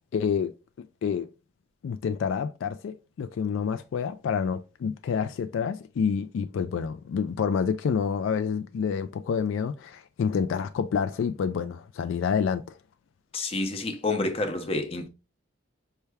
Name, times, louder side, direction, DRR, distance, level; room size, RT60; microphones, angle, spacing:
voice 1, 0.1-0.5 1.0-1.3 1.8-12.8, left 6 dB, 70° left, 0.3 m, -28 dB
voice 2, 13.3-15.1, left 2 dB, 30° left, 0.6 m, -29 dB
5.6 x 2.2 x 3.3 m
head